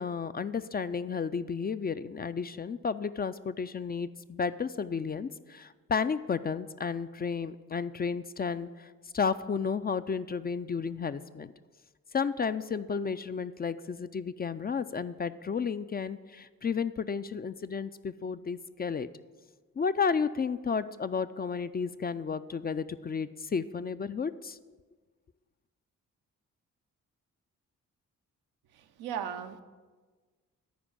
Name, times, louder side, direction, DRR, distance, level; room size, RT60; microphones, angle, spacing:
voice 1, 0.0-11.5 12.1-19.1 19.8-24.6, left 5 dB, 25° left, 13 dB, 0.4 m, -32 dB
voice 2, 28.7-29.6, right 8 dB, 85° right, 7 dB, 0.7 m, -37 dB
10.5 x 4.5 x 7.1 m, 1.4 s
supercardioid pair, 50°, 36 cm